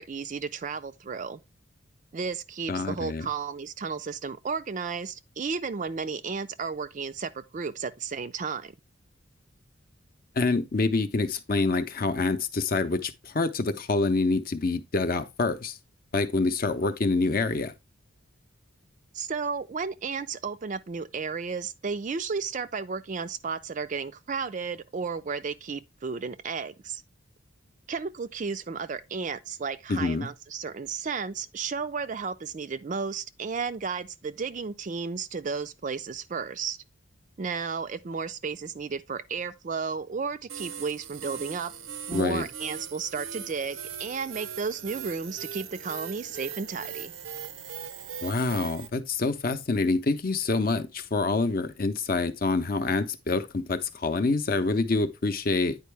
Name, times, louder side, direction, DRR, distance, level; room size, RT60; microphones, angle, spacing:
voice 1, 0.0-1.4 2.1-8.8 19.1-27.0 27.9-36.8 37.4-41.7 42.1-47.1, right 5 dB, 40° right, 0.4 m, -33 dB
voice 2, 2.7-3.3 10.4-15.8 16.1-17.7 29.9-30.3 42.1-42.5 48.2-55.8, left 3 dB, 45° left, 0.7 m, -26 dB
sound 1, 40.5-48.9, right 8 dB, 90° right, 0.7 m, -40 dB
9.4 x 4.6 x 3.3 m
head